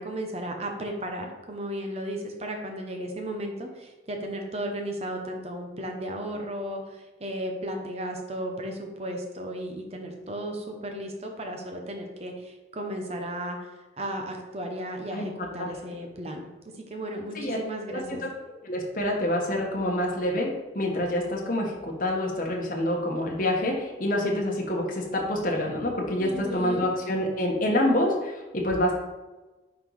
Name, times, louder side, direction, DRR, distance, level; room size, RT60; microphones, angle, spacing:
voice 1, 0.0-13.7 14.0-16.4 16.9-18.2 26.2-26.9, right 1 dB, 35° right, 3 dB, 0.8 m, -34 dB
voice 2, 15.1-15.7 17.3-17.6 17.9-18.3 18.6-28.9, left 1 dB, 45° left, -1 dB, 1.2 m, -27 dB
5.3 x 4.0 x 4.7 m, 1.1 s
head